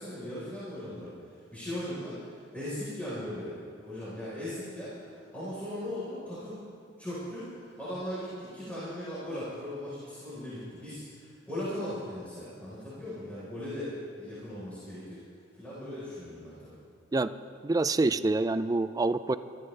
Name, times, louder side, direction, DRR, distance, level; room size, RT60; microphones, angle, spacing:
voice 1, 0.0-6.6 7.0-15.2 15.5-16.8, left 1 dB, 5° left, -11 dB, 4.2 m, -38 dB
voice 2, 17.6-19.4, right 2 dB, 20° right, 13 dB, 0.3 m, -26 dB
23.0 x 13.5 x 3.3 m, 2.2 s
head